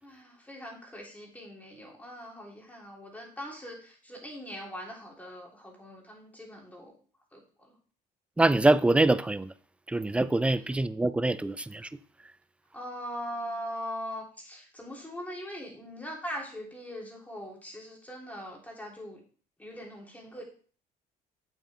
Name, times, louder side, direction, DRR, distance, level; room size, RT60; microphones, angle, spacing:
voice 1, 0.0-6.9 7.3-7.7 12.7-19.2 19.6-20.4, equal, 10° left, 3.3 m, -41 dB
voice 2, 8.4-9.5 9.9-11.9, right 2 dB, 5° right, 0.4 m, -24 dB
8.3 x 8.1 x 3.5 m
cardioid pair, 110°, 17 cm